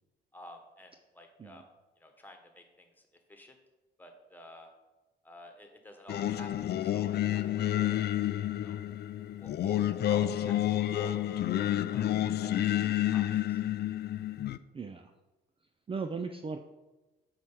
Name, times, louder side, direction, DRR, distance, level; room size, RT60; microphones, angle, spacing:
voice 1, 0.3-1.6 2.0-2.9 3.3-3.6 4.0-4.7 5.2-7.9 8.6-8.8 9.4-12.1 12.4-13.6, left 1 dB, 10° left, 4 dB, 1.4 m, -51 dB
Singing, 6.1-14.6, left 12 dB, 55° left, 0.4 m, -30 dB
voice 2, 15.9-16.6, right 4 dB, 25° right, 6 dB, 0.5 m, -36 dB
7.6 x 4.8 x 5.8 m, 1.1 s
cardioid pair, 90°, 20 cm